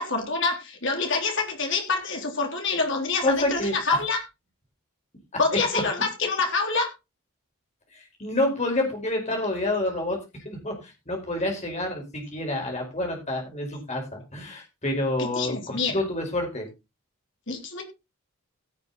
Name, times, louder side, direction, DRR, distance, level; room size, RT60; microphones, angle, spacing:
voice 1, 0.0-4.2 5.4-6.9 15.2-15.9 17.5-17.8, left 3 dB, 55° left, 2 dB, 3.5 m, -26 dB
voice 2, 3.2-3.7 7.9-10.2 10.4-16.7, left 1 dB, 30° left, 1 dB, 4.9 m, -28 dB
16.5 x 7.0 x 4.1 m, 0.27 s
head